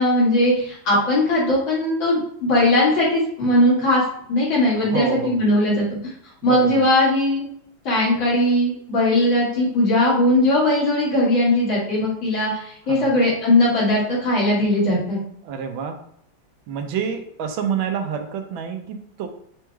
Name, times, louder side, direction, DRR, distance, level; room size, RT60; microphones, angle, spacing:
voice 1, 0.0-4.0 4.3-6.1 6.4-7.4 7.8-15.2, left 1 dB, 75° left, -7 dB, 2.8 m, -19 dB
voice 2, 4.8-5.4 6.4-6.9 12.9-13.2 15.4-16.0 16.7-19.3, right 7 dB, 85° right, 6 dB, 1.4 m, -28 dB
7.2 x 3.1 x 2.3 m, 0.68 s
omnidirectional pair, 2.2 m